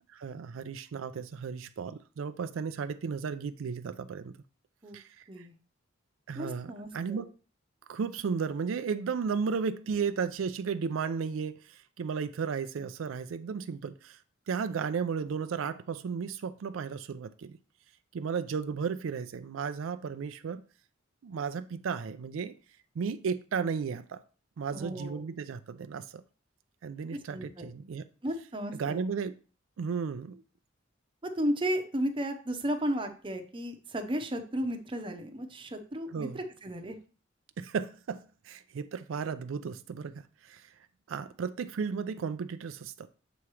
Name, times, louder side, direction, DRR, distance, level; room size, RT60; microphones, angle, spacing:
voice 1, 0.1-4.3 4.9-5.5 6.3-7.3 7.9-14.2 14.5-17.6 18.1-20.6 21.2-22.5 23.0-24.2 24.6-26.2 26.8-28.0 28.8-29.3 29.8-30.4 36.1-36.4 37.6-40.7 41.1-43.1, right 6 dB, 90° right, 0.4 m, -34 dB
voice 2, 6.3-7.3 24.7-25.2 27.1-27.7 28.2-29.0 31.2-37.0, equal, 25° right, 0.7 m, -34 dB
6.9 x 3.0 x 4.8 m
head